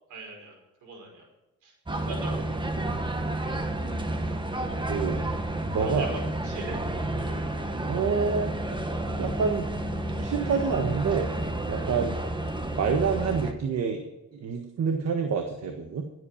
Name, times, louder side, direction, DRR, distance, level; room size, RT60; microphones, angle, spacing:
voice 1, 0.1-0.6 0.8-1.2 1.6-1.7 2.0-2.6 5.8-6.8, right 2 dB, 85° right, 1 dB, 5.3 m, -39 dB
sound 1, 1.9-13.5, right 1 dB, 15° right, 1.5 m, -30 dB
voice 2, 5.7-6.1 7.8-8.5 9.2-9.7 10.1-11.3 11.7-12.1 12.7-14.0 14.3-16.0, right 5 dB, 60° right, 5 dB, 1.5 m, -27 dB
15.5 x 8.4 x 5.8 m, 0.99 s
cardioid pair, 90°, 30 cm